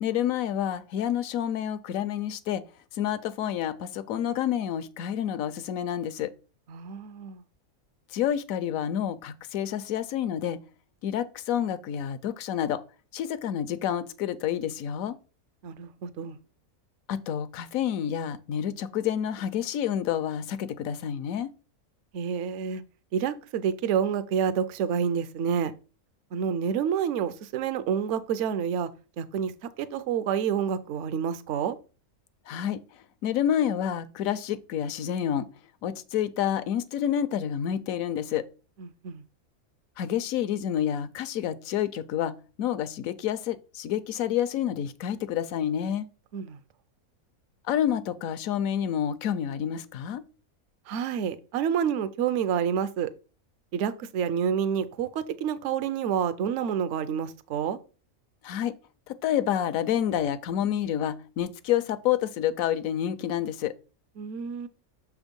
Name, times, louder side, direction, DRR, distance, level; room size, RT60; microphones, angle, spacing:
voice 1, 0.0-2.6 2.9-6.3 8.1-10.6 11.0-12.8 13.1-15.2 17.1-21.5 32.5-32.8 33.2-35.5 35.8-38.4 40.0-46.1 47.7-50.2 58.4-58.7 59.1-63.7, left 10 dB, 75° left, 1.0 m, -28 dB
voice 2, 6.7-7.4 15.6-16.4 22.1-22.8 23.1-25.7 26.3-28.9 29.2-29.5 29.8-31.8 38.8-39.2 46.3-46.6 50.9-53.1 53.7-57.8 64.2-64.7, right 8 dB, 65° right, 0.8 m, -28 dB
6.4 x 3.6 x 5.2 m
omnidirectional pair, 1.5 m